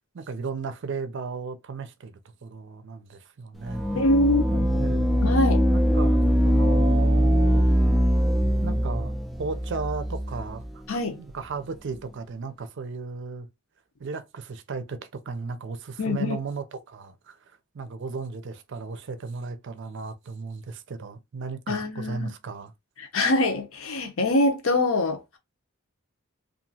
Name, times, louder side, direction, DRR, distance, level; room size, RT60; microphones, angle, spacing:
voice 1, 0.1-3.8 4.5-5.2 5.7-7.7 8.6-9.1 9.4-10.8 11.2-13.5 14.0-17.4 17.7-22.7, right 4 dB, 60° right, 0.5 m, -35 dB
sound 1, 3.6-10.8, equal, ahead, 0.3 m, -22 dB
voice 2, 3.9-4.4 5.2-5.6 10.9-11.2 16.0-16.4 21.7-22.3 23.0-25.4, left 2 dB, 70° left, 0.8 m, -24 dB
2.9 x 2.5 x 2.7 m
head